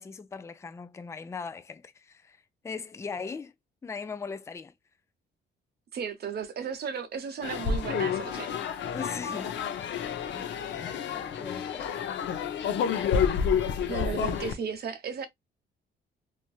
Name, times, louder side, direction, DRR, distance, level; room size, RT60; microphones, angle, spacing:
voice 1, 0.0-2.4 2.6-3.5 3.8-4.7 8.9-10.0 10.3-12.0, left 5 dB, 15° left, 0.3 m, -40 dB
voice 2, 5.9-8.9 13.9-15.3, right 6 dB, 55° right, 0.8 m, -35 dB
sound 1, 7.4-14.5, left 7 dB, 70° left, 0.6 m, -29 dB
3.1 x 2.5 x 2.3 m
cardioid pair, 90°, 20 cm